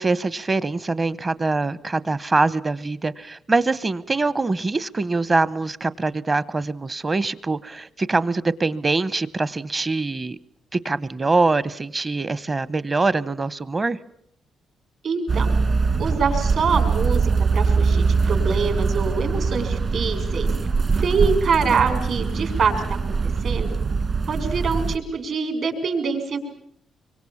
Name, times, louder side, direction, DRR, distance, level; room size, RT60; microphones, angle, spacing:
voice 1, 0.0-10.4 10.7-14.0, right 3 dB, 25° right, 18 dB, 0.9 m, -23 dB
voice 2, 15.0-15.5 16.0-20.5 21.0-23.8 24.3-26.4, right 5 dB, 60° right, 6 dB, 5.7 m, -25 dB
sound 1, 15.3-25.0, right 4 dB, 40° right, 1.9 m, -22 dB
25.5 x 24.5 x 7.2 m, 0.69 s
cardioid pair, 120°, 0 cm